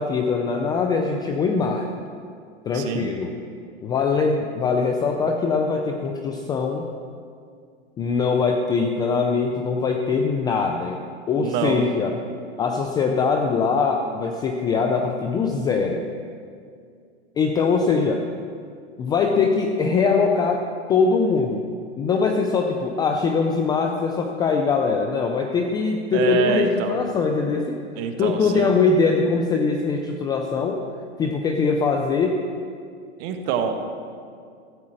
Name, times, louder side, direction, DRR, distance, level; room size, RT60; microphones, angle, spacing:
voice 1, 0.0-1.9 2.6-3.3 3.8-6.8 8.0-11.0 11.3-12.1 12.6-16.0 17.4-18.2 19.0-20.6 20.9-21.6 22.0-27.8 28.2-30.8 31.2-32.4, left 4 dB, 10° left, 3 dB, 0.4 m, -22 dB
voice 2, 2.7-3.1 11.4-11.8 26.1-26.9 28.0-28.7 33.2-33.8, right 7 dB, 40° right, 5 dB, 1.5 m, -25 dB
13.5 x 8.4 x 6.4 m, 2.3 s
hypercardioid pair, 135°, 36 cm